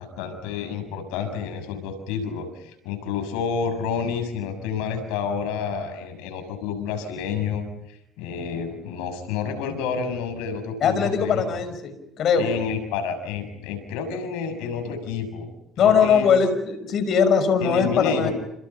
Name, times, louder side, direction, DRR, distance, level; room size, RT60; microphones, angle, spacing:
voice 1, 0.0-11.6 12.4-15.5 15.8-16.3 17.6-18.3, left 6 dB, 90° left, 7 dB, 6.7 m, -29 dB
voice 2, 10.8-12.5 15.8-18.3, left 6 dB, 55° left, 10 dB, 5.7 m, -20 dB
30.0 x 29.0 x 5.7 m, 0.79 s
cardioid pair, 105°, 0 cm